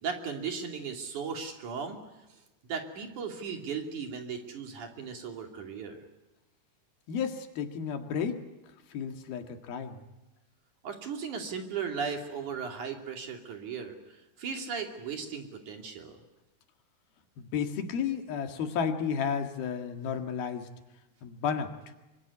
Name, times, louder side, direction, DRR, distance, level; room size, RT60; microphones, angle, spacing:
voice 1, 0.0-2.0 2.6-6.0 10.8-14.0 14.4-16.2, right 6 dB, 55° right, 3 dB, 3.9 m, -36 dB
voice 2, 7.1-8.5 8.9-10.0 17.4-20.7 21.2-21.7, left 7 dB, 80° left, 5 dB, 3.8 m, -32 dB
25.5 x 24.5 x 9.7 m, 1.0 s
omnidirectional pair, 4.3 m